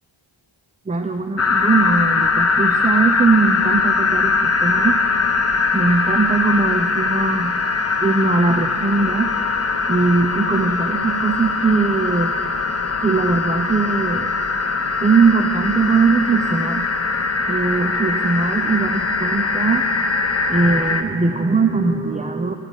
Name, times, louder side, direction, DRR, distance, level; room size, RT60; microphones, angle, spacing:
voice 1, 0.9-5.0 5.7-7.6 8.0-9.3 9.6-12.3 13.0-14.3 15.0-16.9 17.5-19.9 20.5-22.6, right 4 dB, 15° right, 5 dB, 0.4 m, -20 dB
sound 1, 1.4-21.0, left 4 dB, 30° left, 0.6 m, -21 dB
17.5 x 7.3 x 5.3 m, 2.7 s
wide cardioid pair, 60°, 50 cm